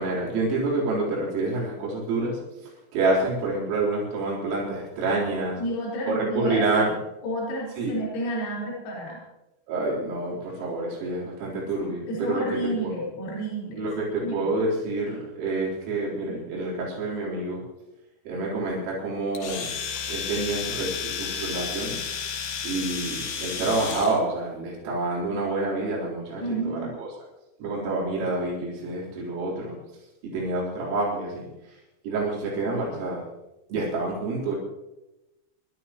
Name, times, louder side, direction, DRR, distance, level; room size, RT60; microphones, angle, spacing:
voice 1, 0.0-2.4 2.9-5.6 6.1-6.9 7.8-7.9 9.7-12.9 13.8-17.6 18.3-19.7 20.1-22.0 22.6-27.1 27.6-29.8 30.2-31.4 32.0-33.2 33.7-34.6, right 2 dB, 80° right, -5 dB, 6.6 m, -28 dB
voice 2, 5.6-7.0 7.2-9.2 12.1-13.9 14.2-14.6 26.4-27.0, right 1 dB, 85° left, -6 dB, 7.0 m, -31 dB
Domestic sounds home sounds, 19.4-24.2, left 7 dB, 65° left, 2.3 m, -32 dB
27.0 x 13.0 x 3.0 m, 0.97 s
omnidirectional pair, 5.9 m